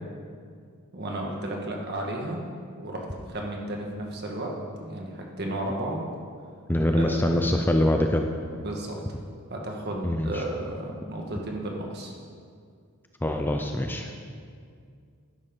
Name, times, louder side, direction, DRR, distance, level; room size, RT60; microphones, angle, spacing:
voice 1, 0.9-2.4 2.8-4.5 4.8-6.0 6.9-7.4 8.6-9.0 9.5-12.1, right 1 dB, 50° right, 0 dB, 1.7 m, -33 dB
voice 2, 6.7-8.3 10.0-10.4 13.2-14.1, left 1 dB, 10° left, 4 dB, 0.5 m, -24 dB
12.0 x 10.5 x 3.9 m, 2.2 s
head